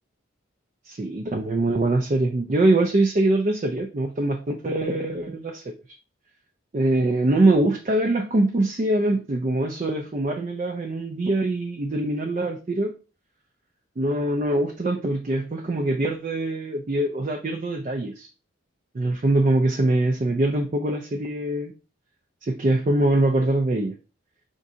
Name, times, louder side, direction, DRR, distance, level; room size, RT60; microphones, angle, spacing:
voice 1, 0.9-5.7 6.7-12.9 14.0-18.3 18.9-21.7 22.4-23.9, right 2 dB, 35° right, 3 dB, 0.4 m, -23 dB
5.0 x 3.6 x 2.7 m, 0.34 s
head